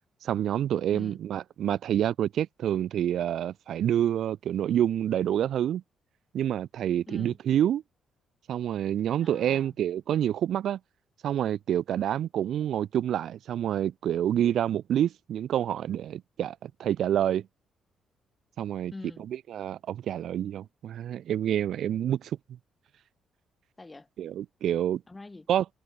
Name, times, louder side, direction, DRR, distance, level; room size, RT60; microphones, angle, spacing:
voice 1, 0.2-5.8 6.3-7.8 8.5-10.8 11.2-17.5 18.6-18.9 19.5-22.4 24.2-25.0 25.5-25.8, right 10 dB, 70° right, 0.4 m, -27 dB
voice 2, 7.1-7.4 9.2-9.7 18.9-19.3 23.8-24.1 25.1-25.5, left 2 dB, 20° left, 1.7 m, -44 dB
cardioid pair, 90°, 0 cm